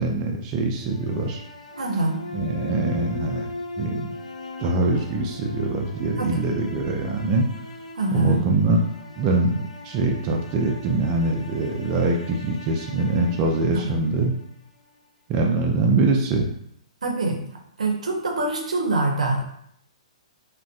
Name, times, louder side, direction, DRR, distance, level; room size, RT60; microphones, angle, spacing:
voice 1, 0.0-1.4 2.3-3.5 3.8-4.1 4.6-7.5 8.1-8.8 9.2-14.3 15.3-16.5, right 2 dB, 30° right, 1 dB, 0.3 m, -23 dB
sound 1, 0.8-14.9, left 2 dB, 85° left, 0.3 m, -40 dB
voice 2, 1.8-2.2 6.2-6.4 7.9-8.4 13.7-13.8 17.0-17.4 17.8-19.4, right 2 dB, 80° right, 2 dB, 0.6 m, -24 dB
2.5 x 2.1 x 2.4 m, 0.71 s
figure-of-eight pair, 120°, 4 cm